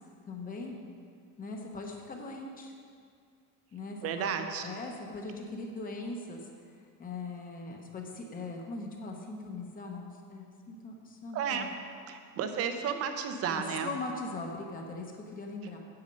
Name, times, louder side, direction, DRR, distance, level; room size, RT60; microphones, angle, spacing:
voice 1, 0.3-0.8 1.4-2.7 3.7-6.5 7.0-11.7 13.5-15.8, left 3 dB, 25° left, 1 dB, 0.9 m, -40 dB
voice 2, 4.0-4.6 11.3-11.7 12.1-13.9, right 7 dB, 45° right, 7 dB, 0.8 m, -32 dB
8.6 x 8.1 x 5.3 m, 2.2 s
cardioid pair, 180°, 34 cm